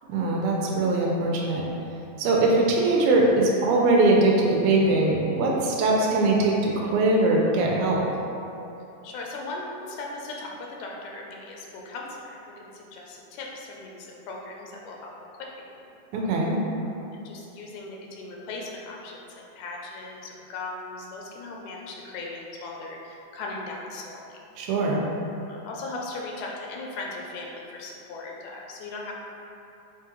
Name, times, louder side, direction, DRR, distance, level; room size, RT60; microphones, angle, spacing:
voice 1, 0.1-1.7 2.2-8.0 16.1-16.6 24.6-25.0, right 2 dB, 80° right, -2 dB, 2.0 m, -21 dB
voice 2, 9.0-15.7 16.8-19.2 19.6-24.4 25.5-29.2, left 3 dB, 85° left, -1 dB, 1.9 m, -38 dB
5.7 x 2.3 x 3.0 m, 2.8 s
omnidirectional pair, 3.4 m